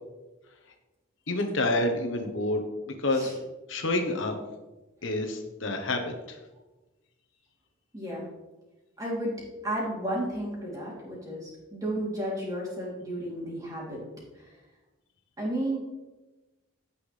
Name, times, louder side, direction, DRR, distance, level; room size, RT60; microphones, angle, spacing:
voice 1, 1.3-3.3 3.7-4.4 5.0-6.4, left 2 dB, 70° left, 4 dB, 1.1 m, -28 dB
voice 2, 7.9-8.3 9.0-9.3 9.6-14.0 14.4-14.6 15.4-15.8, right 1 dB, 15° right, -5 dB, 3.1 m, -33 dB
16.0 x 5.7 x 3.3 m, 1.1 s
head